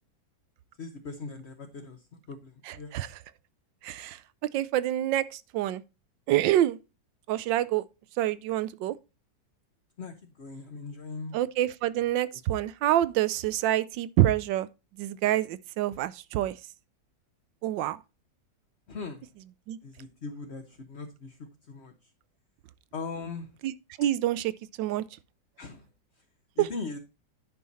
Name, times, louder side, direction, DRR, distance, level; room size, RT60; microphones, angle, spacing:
voice 1, 0.8-2.9 10.0-11.4 18.9-19.3 19.8-21.4 21.7-22.1 22.9-23.5 25.6-25.8 26.6-27.0, left 4 dB, 40° left, 1.1 m, -40 dB
voice 2, 2.7-3.1 3.8-5.8 6.3-6.8 7.3-7.8 8.2-9.0 11.3-14.7 15.0-16.6 17.6-18.0 19.7-19.8 23.6-23.7 24.0-24.5 24.8-25.0 26.6-26.7, right 13 dB, 85° right, 1.3 m, -27 dB
10.5 x 5.7 x 4.0 m
omnidirectional pair, 2.0 m